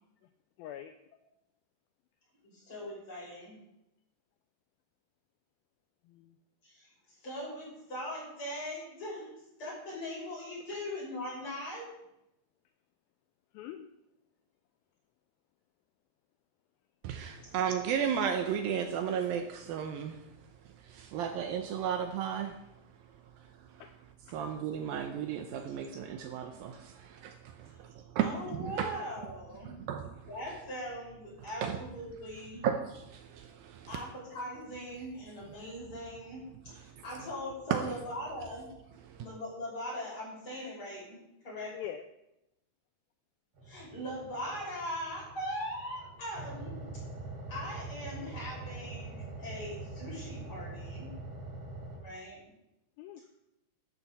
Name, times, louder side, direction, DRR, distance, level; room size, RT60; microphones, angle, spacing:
voice 1, 0.6-0.9 6.0-6.4 13.5-13.9 23.8-23.9 24.3-24.4 41.7-42.0 53.0-53.3, left 11 dB, 80° left, 7 dB, 2.3 m, -43 dB
voice 2, 2.5-3.6 6.6-6.9 7.2-9.3 9.6-11.8 27.7-27.8 28.2-29.8 30.3-32.7 33.9-38.7 39.2-41.2 41.4-41.7 43.6-46.8 47.5-51.1 52.0-52.4, equal, 30° left, -6 dB, 6.5 m, -40 dB
voice 3, 17.0-20.3 20.7-22.6 23.4-23.8 24.3-28.9 29.6-30.3 31.6-31.8 32.6-33.9 36.8-37.0 37.7-37.9 39.0-39.3, right 8 dB, 75° right, 6 dB, 2.3 m, -34 dB
sound 1, 43.6-52.0, right 2 dB, 45° right, 3.1 m, -44 dB
12.0 x 7.0 x 7.1 m, 0.87 s
omnidirectional pair, 4.6 m